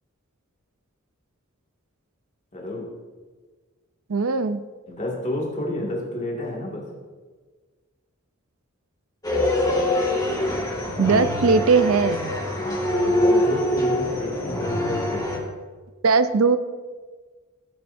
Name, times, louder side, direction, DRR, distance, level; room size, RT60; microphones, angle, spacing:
voice 1, 2.5-2.9 4.9-6.8 12.5-15.2, left 1 dB, 35° left, -3 dB, 2.1 m, -30 dB
voice 2, 4.1-4.6 11.0-12.3 16.0-16.6, right 4 dB, 80° right, 11 dB, 0.6 m, -19 dB
sound 1, 9.2-15.4, left 1 dB, 15° left, 1.9 m, -24 dB
16.5 x 8.7 x 2.7 m, 1.4 s
head